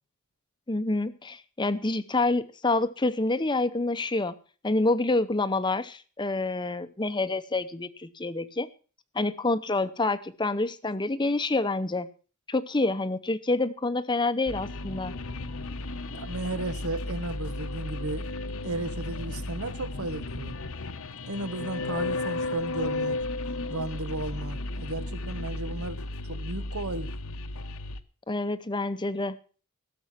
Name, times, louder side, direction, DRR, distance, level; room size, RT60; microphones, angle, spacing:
voice 1, 0.7-4.4 4.6-8.7 9.1-12.1 12.5-15.1 28.3-29.4, left 2 dB, 20° left, 0.7 m, -27 dB
sound 1, 14.5-28.0, left 2 dB, 75° left, 1.0 m, -34 dB
voice 2, 16.1-18.3 18.6-20.5 21.3-23.2 23.7-27.1, right 2 dB, 85° right, 1.4 m, -34 dB
16.5 x 7.0 x 7.4 m
head